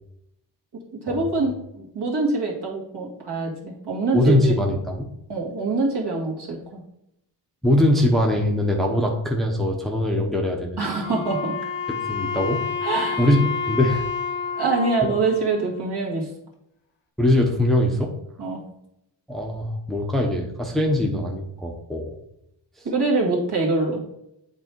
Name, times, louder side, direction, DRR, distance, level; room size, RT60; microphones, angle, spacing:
voice 1, 0.7-4.5 5.3-6.8 10.8-11.6 12.8-13.2 14.6-16.3 18.4-18.6 22.8-24.0, right 3 dB, 55° right, -2 dB, 2.0 m, -24 dB
voice 2, 4.1-5.1 7.6-10.8 11.9-12.6 13.2-14.0 15.0-15.1 17.2-18.1 19.3-22.2, left 1 dB, ahead, 0 dB, 0.8 m, -22 dB
Wind instrument woodwind instrument, 11.0-16.2, left 6 dB, 85° left, 1.3 m, -29 dB
8.1 x 3.4 x 4.6 m, 0.81 s
cardioid pair, 100°, 46 cm